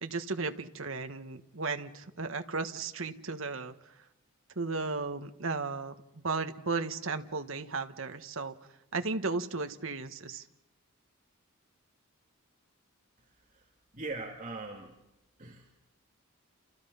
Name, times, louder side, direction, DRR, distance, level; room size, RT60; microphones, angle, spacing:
voice 1, 0.0-3.7 4.5-8.6 8.9-10.4, right 3 dB, 65° right, 7 dB, 1.4 m, -35 dB
voice 2, 13.2-13.7 13.9-15.0 15.4-15.8, right 3 dB, 35° right, -1 dB, 2.7 m, -42 dB
29.5 x 28.5 x 5.7 m, 0.91 s
head